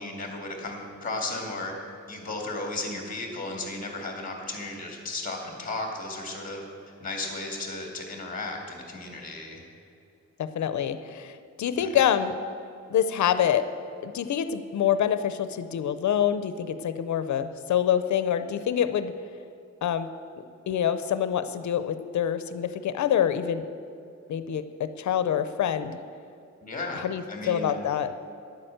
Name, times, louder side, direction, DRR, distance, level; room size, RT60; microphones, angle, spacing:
voice 1, 0.0-1.7 2.1-6.6 7.0-9.6 11.8-11.9 26.6-27.7, left 2 dB, 30° left, 1 dB, 2.3 m, -35 dB
voice 2, 10.4-12.3 12.9-13.7 14.0-19.1 19.8-20.1 20.7-23.7 24.3-26.0 26.9-28.1, left 9 dB, 80° left, 11 dB, 0.6 m, -26 dB
11.0 x 8.9 x 7.8 m, 2.6 s
wide cardioid pair, 170°, 29 cm